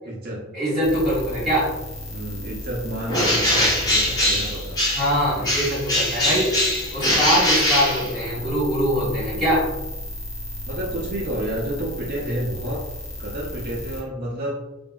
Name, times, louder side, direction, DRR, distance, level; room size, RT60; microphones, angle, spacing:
voice 1, 0.0-0.5 2.1-4.8 10.7-12.8 13.1-14.6, right 1 dB, 45° right, -4 dB, 0.5 m, -30 dB
voice 2, 0.5-1.7 4.9-6.5 6.9-9.7, equal, ahead, -11 dB, 1.5 m, -23 dB
sound 1, 0.8-14.0, left 1 dB, 60° left, 0.7 m, -35 dB
Bird, 3.1-5.2 5.4-8.5, left 1 dB, 20° left, 0.7 m, -22 dB
2.8 x 2.5 x 2.2 m, 1.0 s
head